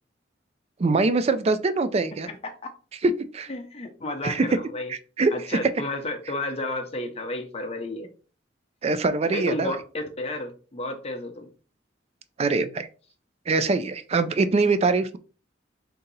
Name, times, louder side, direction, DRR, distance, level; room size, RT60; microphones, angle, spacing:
voice 1, 0.8-2.3 3.0-3.5 4.2-4.5 4.9-5.6 8.8-9.8 12.4-12.9 13.5-15.2, right 3 dB, 35° right, 0.4 m, -23 dB
voice 2, 2.3-2.7 3.5-4.9 5.3-8.1 9.3-11.5, left 2 dB, 35° left, 0.8 m, -32 dB
3.8 x 2.8 x 4.0 m
head